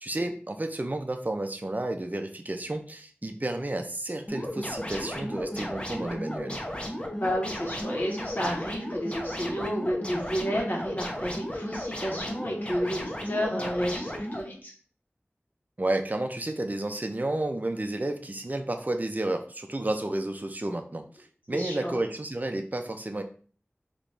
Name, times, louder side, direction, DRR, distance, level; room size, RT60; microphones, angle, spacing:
voice 1, 0.0-6.6 15.8-23.2, right 1 dB, 40° right, 6 dB, 0.6 m, -31 dB
sound 1, 4.3-14.4, equal, 25° left, 0.9 m, -34 dB
voice 2, 7.2-14.7 21.5-22.0, equal, 45° left, -2 dB, 1.5 m, -31 dB
4.0 x 3.0 x 3.4 m, 0.43 s
wide cardioid pair, 45°, 4 cm